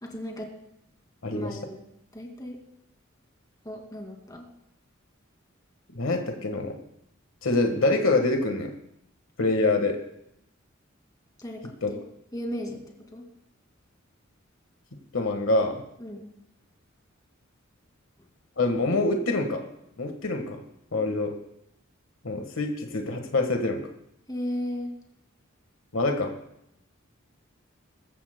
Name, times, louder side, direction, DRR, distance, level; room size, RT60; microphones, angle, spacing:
voice 1, 0.0-0.5 1.3-1.8 2.1-2.6 3.6-4.5 11.4-12.0 12.3-12.8 13.1-13.2 16.0-16.3 24.3-24.9, left 1 dB, 20° left, 1 dB, 2.3 m, -35 dB
voice 2, 1.2-1.6 5.9-6.8 7.4-8.7 9.4-10.0 11.8-11.9 15.1-15.8 18.6-19.6 20.0-20.6 20.9-21.3 22.2-23.8 25.9-26.3, left 2 dB, 75° left, 4 dB, 1.5 m, -25 dB
22.0 x 14.0 x 2.2 m, 0.78 s
head